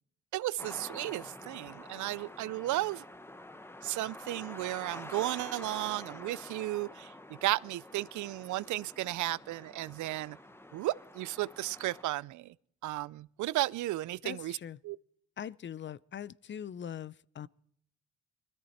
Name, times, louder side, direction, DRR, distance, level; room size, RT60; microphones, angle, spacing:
voice 1, 0.3-3.0 3.8-10.4 10.7-12.5 12.8-14.6 14.8-15.0, right 16 dB, 75° right, 0.5 m, -34 dB
sound 1, 0.6-12.0, left 1 dB, 10° left, 0.9 m, -48 dB
voice 2, 14.2-14.8 15.4-17.5, left 9 dB, 40° left, 0.5 m, -42 dB
21.0 x 14.0 x 4.3 m
cardioid pair, 90°, 30 cm